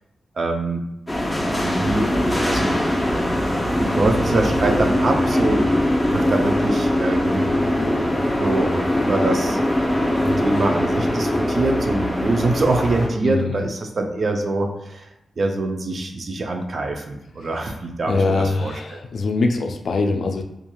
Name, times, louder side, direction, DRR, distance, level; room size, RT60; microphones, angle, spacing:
voice 1, 0.4-0.8 1.5-2.8 3.8-5.7 6.0-7.5 8.4-9.6 10.4-15.1 15.4-19.0, right 2 dB, 55° right, 3 dB, 0.4 m, -24 dB
sound 1, 1.1-13.1, left 1 dB, 10° left, 0.6 m, -21 dB
voice 2, 13.2-13.6 18.1-20.4, left 3 dB, 70° left, 4 dB, 0.3 m, -22 dB
2.9 x 2.4 x 2.2 m, 0.87 s
cardioid pair, 90°, 0 cm